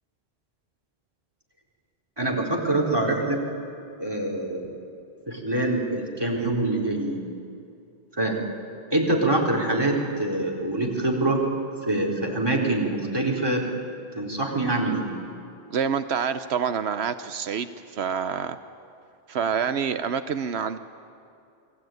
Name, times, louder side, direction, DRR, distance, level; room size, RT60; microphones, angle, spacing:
voice 1, 2.2-3.4 4.0-4.7 5.3-7.2 8.2-8.4 8.9-11.4 11.9-13.7 14.1-15.1, right 2 dB, 25° right, 0 dB, 4.2 m, -25 dB
voice 2, 15.7-18.6 19.3-20.8, right 7 dB, 85° right, 10 dB, 1.1 m, -27 dB
29.0 x 21.5 x 9.3 m, 2.6 s
omnidirectional pair, 1.1 m